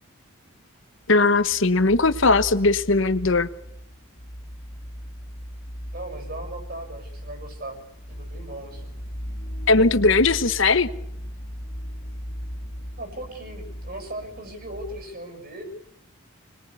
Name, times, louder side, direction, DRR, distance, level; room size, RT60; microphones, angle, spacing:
voice 1, 1.1-3.5 9.7-10.9, left 3 dB, 65° left, 1.2 m, -19 dB
sound 1, 1.1-15.0, equal, 40° left, 1.5 m, -37 dB
voice 2, 5.9-7.8 8.1-9.0 13.0-15.7, right 1 dB, 45° right, 7.1 m, -38 dB
26.0 x 21.5 x 8.5 m
head